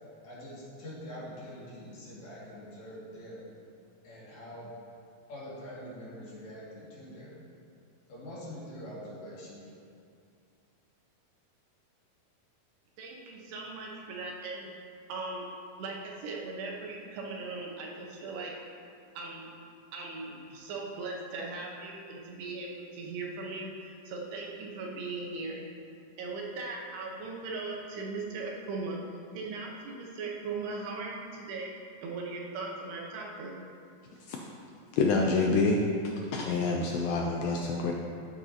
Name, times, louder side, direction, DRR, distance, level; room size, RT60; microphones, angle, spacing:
voice 1, 0.2-3.4 4.0-4.7 5.3-7.4 8.1-9.7, equal, 50° left, -8 dB, 3.3 m, -44 dB
voice 2, 13.0-14.7 15.1-15.5 15.8-18.5 19.1-19.5 19.9-25.6 26.2-29.0 29.3-31.7 32.0-33.5, right 3 dB, 85° right, -1 dB, 3.3 m, -38 dB
voice 3, 35.0-35.8 36.3-37.9, left 3 dB, 80° left, 0 dB, 2.1 m, -27 dB
14.0 x 8.2 x 2.9 m, 2.4 s
omnidirectional pair, 4.5 m